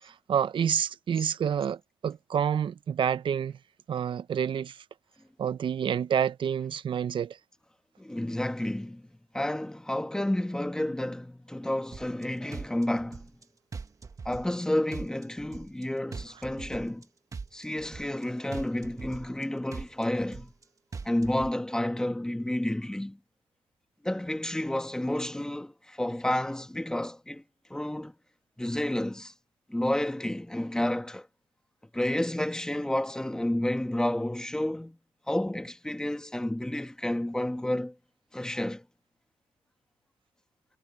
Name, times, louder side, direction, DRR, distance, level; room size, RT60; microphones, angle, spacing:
voice 1, 0.0-3.6 3.9-4.8 5.4-7.4, right 8 dB, 50° right, 0.8 m, -28 dB
voice 2, 8.0-9.0 9.3-13.3 14.2-17.0 17.5-20.5 21.0-23.2 24.0-27.4 27.7-28.1 28.6-29.3 29.7-31.3 31.9-35.0 35.3-37.9 38.3-38.8, left 1 dB, 5° left, 1.6 m, -30 dB
sound 1, 11.9-12.2 12.5-13.4 13.7-14.6 14.9-15.8 16.1-17.0 17.3-18.2 18.5-19.4 19.7-20.6 20.9-21.5, right 5 dB, 30° right, 1.6 m, -41 dB
cardioid pair, 100°, 11 cm